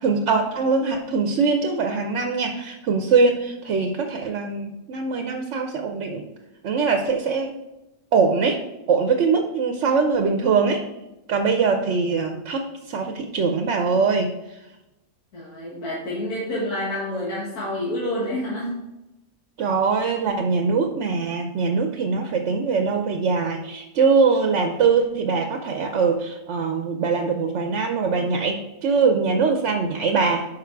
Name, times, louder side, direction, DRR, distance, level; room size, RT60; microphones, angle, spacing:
voice 1, 0.0-6.2 6.6-7.6 8.1-8.6 8.9-10.8 11.3-14.3 19.6-30.5, right 5 dB, 60° right, 5 dB, 0.9 m, -22 dB
voice 2, 15.3-18.8, left 1 dB, 75° left, -6 dB, 2.0 m, -28 dB
6.8 x 5.2 x 4.6 m, 0.95 s
omnidirectional pair, 1.6 m